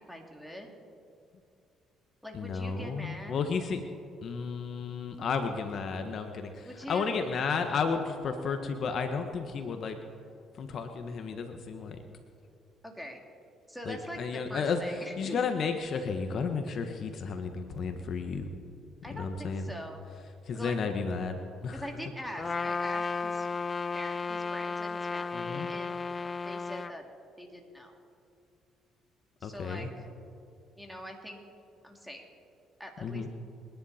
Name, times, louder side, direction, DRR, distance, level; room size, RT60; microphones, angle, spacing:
voice 1, 0.1-0.7 2.2-3.4 6.6-7.1 12.8-13.2 13.7-15.4 19.0-20.0 20.5-20.8 21.7-23.5 23.9-26.1 26.4-27.0 27.4-27.9 29.4-29.9 30.8-31.4 31.8-32.2 32.8-33.3, equal, ahead, 1 dB, 2.9 m, -43 dB
voice 2, 2.3-3.8 4.2-10.0 10.5-12.0 13.8-18.5 19.1-19.7 20.4-21.9 25.3-25.7 29.4-29.9 33.0-33.3, left 5 dB, 55° left, 6 dB, 1.3 m, -33 dB
Trumpet, 22.4-26.9, left 4 dB, 30° left, 0.3 m, -34 dB
28.5 x 10.5 x 4.3 m, 2.5 s
supercardioid pair, 75°, 0 cm